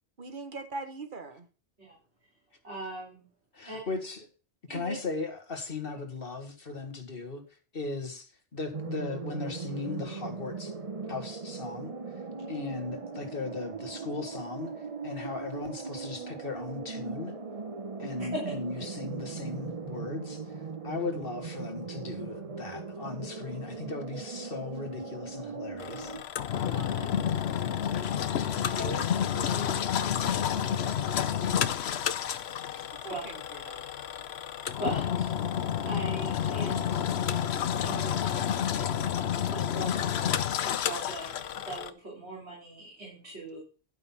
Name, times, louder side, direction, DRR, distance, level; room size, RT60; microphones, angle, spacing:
voice 1, 0.2-1.5 26.6-27.1 33.0-33.9, right 3 dB, 50° right, 1.5 m, -41 dB
voice 2, 2.6-3.2 3.6-3.8 4.7-5.0 28.5-31.5 33.1-33.2 34.8-35.4 35.8-37.1 37.8-38.5 39.3-40.0 40.6-43.6, right 2 dB, 85° right, 3.9 m, -41 dB
voice 3, 3.5-4.2 4.7-7.4 7.7-10.7 11.1-11.9 12.5-14.7 15.0-17.3 18.0-20.4 20.8-26.1, left 3 dB, 60° left, 1.9 m, -37 dB
sound 1, 8.7-26.2, right 4 dB, 35° right, 0.9 m, -39 dB
Engine, 25.8-41.9, left 9 dB, 75° left, 0.9 m, -30 dB
11.5 x 5.6 x 5.8 m
omnidirectional pair, 1.1 m